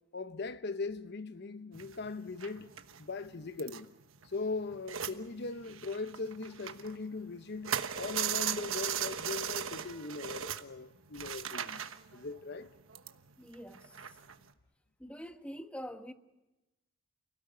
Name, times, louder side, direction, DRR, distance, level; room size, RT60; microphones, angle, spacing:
voice 1, 0.1-2.7 3.0-3.9 4.2-11.8 12.1-12.7, left 3 dB, 55° left, 0.9 m, -39 dB
sound 1, 1.7-5.2 5.5-7.2 7.5-14.5, right 9 dB, 75° right, 1.2 m, -38 dB
voice 2, 13.4-14.0 15.0-16.1, equal, 5° left, 1.2 m, -45 dB
29.0 x 17.0 x 9.1 m
head